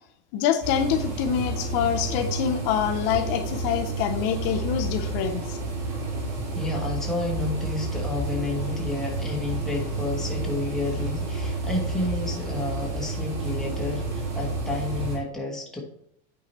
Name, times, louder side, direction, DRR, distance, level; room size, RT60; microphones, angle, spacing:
voice 1, 0.3-5.6, left 8 dB, 60° left, 7 dB, 0.6 m, -26 dB
sound 1, 0.6-15.2, right 3 dB, 55° right, 2.9 m, -30 dB
voice 2, 6.5-15.8, left 3 dB, ahead, -3 dB, 1.2 m, -31 dB
8.4 x 4.7 x 3.0 m, 0.72 s
cardioid pair, 170°, 30 cm